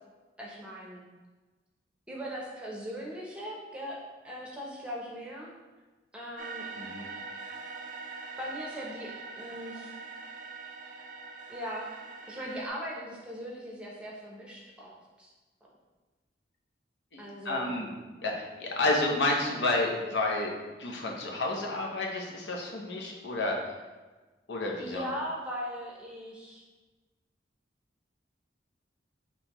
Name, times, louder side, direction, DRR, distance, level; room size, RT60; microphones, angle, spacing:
voice 1, 0.4-1.0 2.1-5.5 6.1-6.7 8.4-9.9 11.5-12.0 12.3-15.3 17.2-17.8 24.8-26.6, equal, 5° right, -4 dB, 0.7 m, -39 dB
sound 1, 6.4-12.7, right 4 dB, 45° right, 0.4 m, -43 dB
voice 2, 6.8-7.1 17.1-17.9 18.2-20.5 20.8-23.7 24.5-25.1, left 2 dB, 75° left, -1 dB, 0.7 m, -30 dB
5.5 x 3.0 x 3.0 m, 1.3 s
head